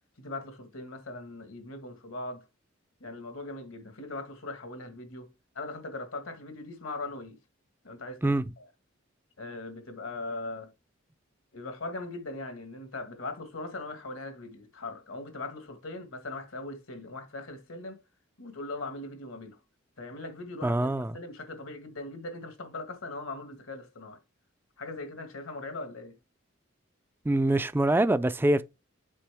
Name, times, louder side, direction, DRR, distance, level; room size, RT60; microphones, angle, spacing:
voice 1, 0.2-2.4 3.0-5.3 5.6-7.4 7.8-8.6 9.4-10.7 11.5-18.0 18.4-19.6 20.0-24.2 24.8-26.2, left 2 dB, 80° left, 1.7 m, -40 dB
voice 2, 20.6-21.2 27.3-28.6, right 1 dB, 10° right, 0.3 m, -24 dB
7.5 x 5.1 x 3.4 m
head